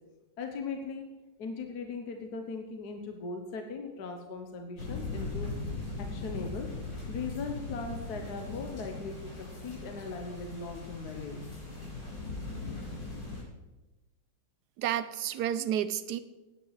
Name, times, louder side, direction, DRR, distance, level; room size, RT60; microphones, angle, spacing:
voice 1, 0.4-1.0 1.4-5.5 6.0-6.7 7.1-9.4 9.6-11.4, left 4 dB, 65° left, 3 dB, 1.5 m, -39 dB
sound 1, 4.8-13.4, left 3 dB, 85° left, 5.4 m, -39 dB
voice 2, 14.8-16.2, right 10 dB, 70° right, 13 dB, 1.1 m, -31 dB
17.5 x 9.6 x 3.3 m, 1.1 s
omnidirectional pair, 1.9 m